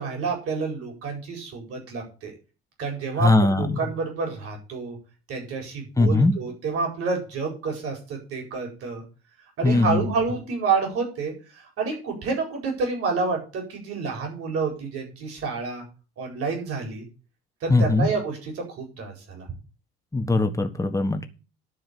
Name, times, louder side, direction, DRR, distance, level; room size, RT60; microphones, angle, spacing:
voice 1, 0.0-2.3 2.8-5.0 5.3-9.0 9.6-15.8 16.2-17.1 17.6-19.5, right 4 dB, 50° right, 2 dB, 4.7 m, -29 dB
voice 2, 3.2-3.8 6.0-6.3 9.6-10.0 17.7-18.1 20.1-21.3, left 2 dB, 10° left, 6 dB, 1.4 m, -20 dB
11.0 x 4.7 x 8.1 m, 0.33 s
figure-of-eight pair, 60°, 30 cm